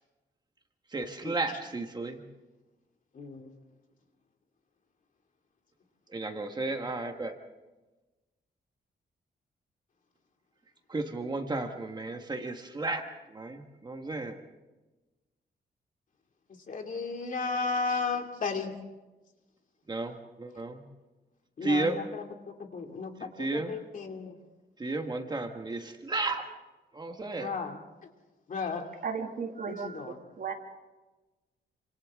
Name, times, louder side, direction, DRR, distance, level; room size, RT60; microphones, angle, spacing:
voice 1, 0.9-2.2 6.1-7.4 10.9-14.4 19.9-20.8 21.6-22.0 23.2-23.7 24.8-26.5 26.9-27.5, right 2 dB, 25° right, 5 dB, 1.5 m, -33 dB
voice 2, 3.1-3.5 16.7-18.7 21.6-24.3 27.4-27.8 28.5-29.0 29.7-30.2, left 4 dB, 45° left, 4 dB, 2.6 m, -34 dB
voice 3, 29.0-30.5, right 5 dB, 55° right, 4 dB, 2.3 m, -35 dB
28.5 x 26.5 x 3.7 m, 1.1 s
wide cardioid pair, 150°, 18 cm